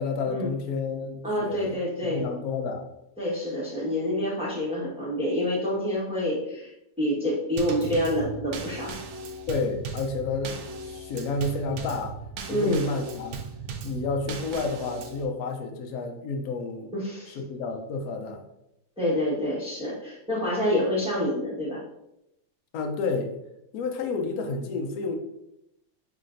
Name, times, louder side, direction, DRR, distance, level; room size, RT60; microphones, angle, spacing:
voice 1, 0.0-1.8 2.0-2.8 9.5-10.6 10.8-13.4 13.8-16.9 17.3-18.4 22.7-23.3 23.7-25.2, left 3 dB, 65° left, 4 dB, 1.0 m, -30 dB
voice 2, 1.2-2.3 3.2-6.7 7.0-8.9 12.5-12.8 16.9-17.4 19.0-21.8, left 1 dB, 5° right, -6 dB, 1.0 m, -27 dB
Drum kit / Snare drum / Bass drum, 7.6-15.2, right 4 dB, 70° right, 0.9 m, -38 dB
5.5 x 3.3 x 2.5 m, 0.84 s
omnidirectional pair, 2.0 m